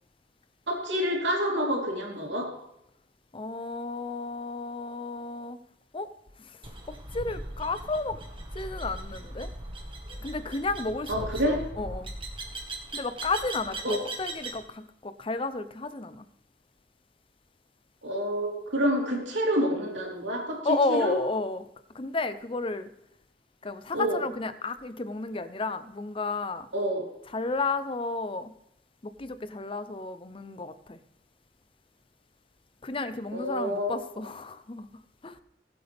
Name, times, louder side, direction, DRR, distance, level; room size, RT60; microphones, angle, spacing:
voice 1, 0.7-2.5 11.1-11.6 13.8-14.0 18.0-21.1 23.9-24.2 26.7-27.0 33.3-34.0, equal, 80° right, -1 dB, 3.4 m, -28 dB
voice 2, 3.3-5.6 5.9-6.1 6.9-8.2 8.5-9.5 10.2-12.1 12.9-16.2 20.6-21.6 21.9-22.9 23.6-26.7 27.3-28.5 29.0-31.0 32.8-34.9 35.2-35.4, left 3 dB, 30° left, 12 dB, 0.6 m, -32 dB
sound 1, 6.6-14.6, right 1 dB, 30° right, 1.5 m, -39 dB
19.0 x 7.9 x 3.5 m, 0.81 s
head